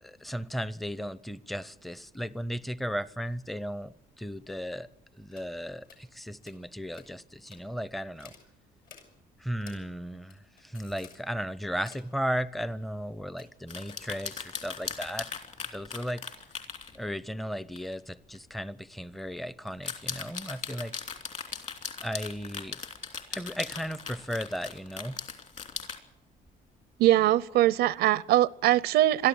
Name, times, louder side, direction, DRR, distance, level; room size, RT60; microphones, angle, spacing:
voice 1, 0.0-4.9 5.1-8.3 9.4-15.3 15.7-16.2 16.9-21.0 22.0-22.8 23.3-25.2, equal, ahead, 0.6 m, -35 dB
sound 1, 5.3-5.5 5.8-6.0 6.4-6.6 6.9-7.1 7.5-7.6 8.2-8.5 8.8-9.1 9.6-9.8 10.2-11.2 11.7-12.1 13.4-13.6 13.9-14.0, left 7 dB, 60° left, 6.0 m, -52 dB
sound 2, 13.7-17.0 17.8-17.9 18.4-18.5 19.7-26.0, left 6 dB, 45° left, 3.0 m, -38 dB
voice 2, 27.0-29.3, right 14 dB, 75° right, 0.6 m, -22 dB
22.5 x 13.5 x 8.8 m
cardioid pair, 110°, 17 cm